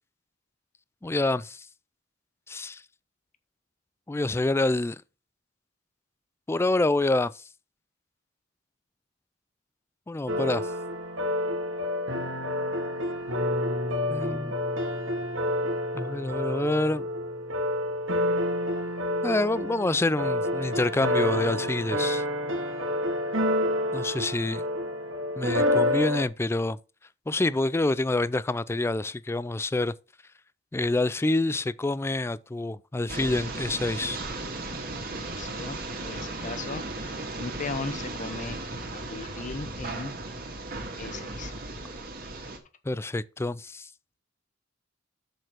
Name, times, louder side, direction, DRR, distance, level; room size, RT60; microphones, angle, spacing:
voice 1, 1.0-1.7 2.5-2.8 4.1-5.0 6.5-7.4 10.1-10.7 14.1-14.5 15.9-17.1 19.2-22.2 23.9-24.6 25.4-26.8 27.3-29.9 30.7-34.2 42.9-43.9, left 2 dB, 15° left, 0.3 m, -27 dB
sound 1, 10.3-26.2, left 1 dB, 75° right, 1.6 m, -28 dB
sound 2, 33.1-42.6, right 2 dB, 50° right, 2.1 m, -36 dB
voice 2, 35.1-38.6 38.9-40.2 41.0-41.5, left 3 dB, 40° left, 1.0 m, -38 dB
6.6 x 6.5 x 6.0 m
head